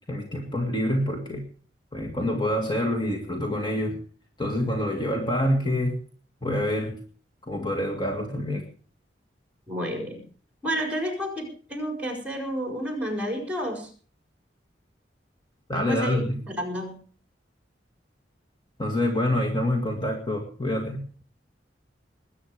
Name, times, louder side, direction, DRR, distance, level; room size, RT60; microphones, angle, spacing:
voice 1, 0.1-1.5 1.9-4.0 4.4-6.0 6.4-7.0 7.5-8.6 15.7-16.4 18.8-21.1, left 1 dB, 25° left, 1 dB, 2.1 m, -26 dB
voice 2, 9.7-10.2 10.6-13.9 15.7-17.0, equal, 10° right, 4 dB, 5.0 m, -30 dB
21.0 x 9.5 x 4.9 m, 0.43 s
head